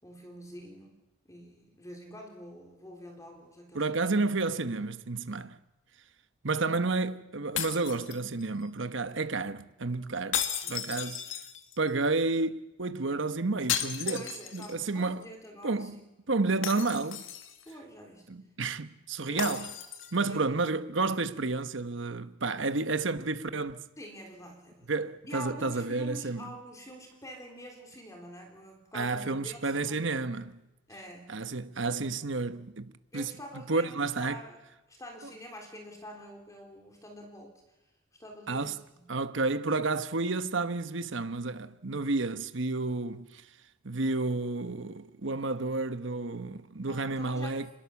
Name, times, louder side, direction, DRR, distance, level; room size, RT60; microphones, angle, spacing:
voice 1, 0.0-1.0 1.3-4.1 10.6-10.9 14.0-16.1 17.7-18.3 19.3-19.6 20.3-20.5 24.0-24.9 25.3-30.2 30.9-31.4 33.1-34.6 34.9-37.6 38.2-39.2 46.9-47.6, equal, 15° left, 3.6 m, -46 dB
voice 2, 3.7-5.6 6.4-10.4 10.7-11.2 11.8-14.3 14.5-15.3 15.6-16.0 16.3-17.2 18.3-19.7 20.1-23.8 24.9-26.5 28.9-30.5 31.3-33.3 33.7-34.4 38.5-38.8 39.1-43.4 43.8-47.7, right 3 dB, 70° right, 1.2 m, -31 dB
sound 1, 7.6-8.6 10.3-11.9 13.7-14.9 15.2-15.3 16.6-17.7 19.4-20.3, left 9 dB, 85° left, 1.9 m, -35 dB
27.0 x 21.0 x 7.2 m
head